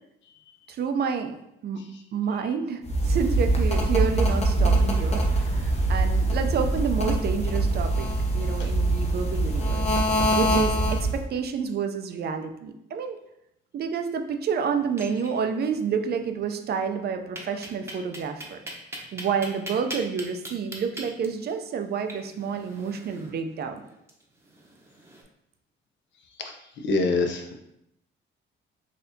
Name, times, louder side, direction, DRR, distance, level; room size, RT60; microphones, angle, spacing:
voice 1, 0.7-1.3 1.6-1.8 2.1-8.1 8.3-9.9 10.3-13.2 13.7-18.6 19.1-23.8, right 6 dB, 55° right, 6 dB, 0.5 m, -29 dB
sound 1, 2.9-11.2, right 1 dB, 35° left, 0.7 m, -23 dB
sound 2, 14.8-15.7 16.0-16.1 16.4-16.5 17.4-25.2, right 1 dB, 15° right, 0.8 m, -41 dB
voice 2, 26.8-27.5, left 3 dB, 70° left, 3 dB, 0.6 m, -25 dB
4.1 x 2.7 x 2.7 m, 0.81 s
cardioid pair, 90°, 20 cm